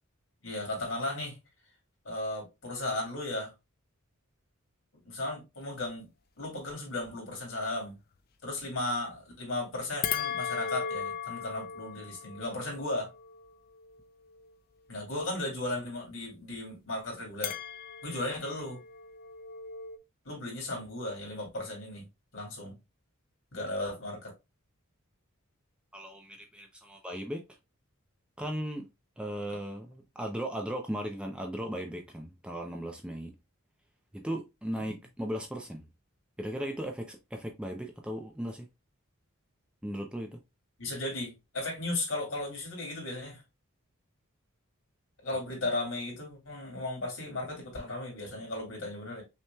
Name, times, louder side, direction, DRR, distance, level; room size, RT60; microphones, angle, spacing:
voice 1, 0.4-1.4 2.0-3.5 5.0-6.1 6.4-8.0 8.4-13.1 14.9-17.5 18.0-18.8 20.2-22.1 22.3-22.7 23.5-24.3 34.8-34.9 40.8-43.4 45.2-49.2, left 2 dB, 70° left, 2.6 m, -35 dB
sound 1, 10.0-14.5 17.4-20.0, left 7 dB, 45° left, 0.4 m, -38 dB
voice 2, 25.9-27.4 28.4-28.9 29.2-33.3 34.1-35.8 36.4-38.6 39.8-40.4, equal, 5° right, 0.5 m, -37 dB
5.8 x 3.0 x 2.2 m
head